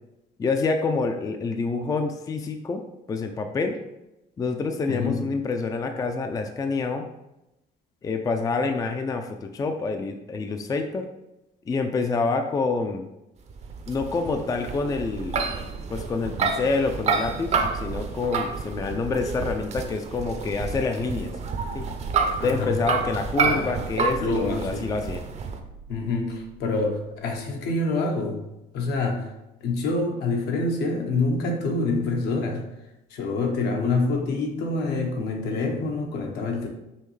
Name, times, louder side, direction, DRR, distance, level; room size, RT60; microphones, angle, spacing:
voice 1, 0.4-3.8 4.4-7.1 8.0-11.1 11.7-13.1 13.9-15.5 15.9-21.3 21.7-21.9 22.4-25.2, left 4 dB, 20° left, 5 dB, 0.4 m, -27 dB
voice 2, 4.9-5.2 22.4-22.7 23.4-24.9 25.9-28.4 28.7-29.3 29.6-32.6 33.1-36.7, left 3 dB, 75° left, 1 dB, 1.1 m, -26 dB
sound 1, 13.5-25.6, right 5 dB, 40° right, 0.6 m, -29 dB
sound 2, 20.9-27.4, right 4 dB, 60° right, 1.0 m, -44 dB
5.5 x 3.1 x 3.2 m, 0.92 s
cardioid pair, 110°, 17 cm